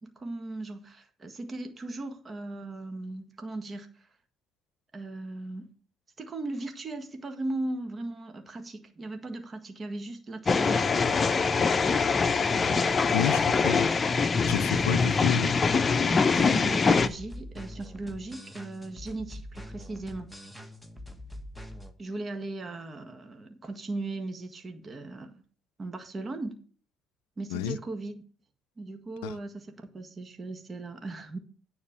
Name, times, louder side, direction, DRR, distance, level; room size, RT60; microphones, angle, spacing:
voice 1, 0.0-4.1 4.9-5.7 6.2-10.8 12.5-12.9 16.4-20.3 22.0-25.4 25.8-26.6 27.4-28.2 28.8-31.4, right 2 dB, 35° right, 1.7 m, -37 dB
sound 1, 10.5-17.1, left 4 dB, 35° left, 0.7 m, -24 dB
voice 2, 13.1-13.9 14.4-15.6 16.4-16.5 27.5-27.8 29.2-29.4, left 12 dB, 85° left, 0.4 m, -30 dB
sound 2, 16.3-21.9, left 1 dB, 5° right, 1.5 m, -44 dB
9.5 x 4.4 x 7.3 m
hypercardioid pair, 65°, 0 cm